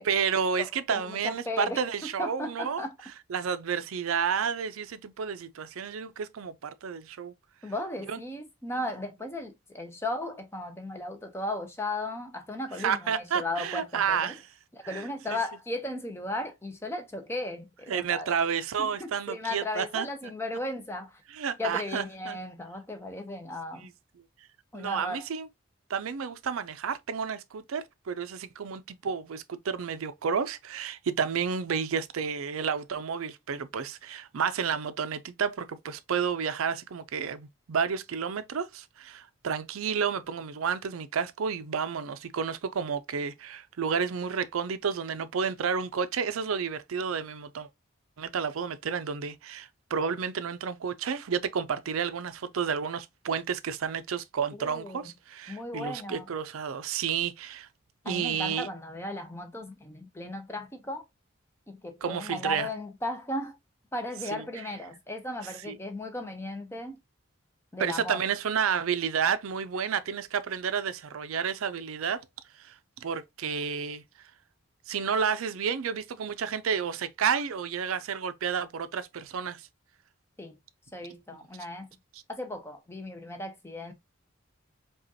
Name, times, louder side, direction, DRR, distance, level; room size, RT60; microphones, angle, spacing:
voice 1, 0.0-2.8 3.3-7.3 8.1-8.2 12.8-14.4 14.8-15.4 17.9-20.1 21.3-22.4 23.8-23.9 24.7-25.5 25.9-47.7 48.2-57.7 58.1-58.7 62.0-62.7 64.3-64.4 65.6-65.7 67.8-72.2 72.6-72.8 73.0-74.0 74.9-79.7, right 6 dB, 90° right, 0.5 m, -31 dB
voice 2, 0.6-2.9 7.6-14.3 14.7-18.3 18.8-21.2 21.6-23.9 24.7-25.3 54.6-55.1 55.5-56.3 58.0-61.0 61.7-63.6 63.9-67.0 67.7-68.2 80.4-80.6 80.9-81.9 82.3-83.9, left 1 dB, 10° left, 0.6 m, -36 dB
4.9 x 2.4 x 2.7 m
head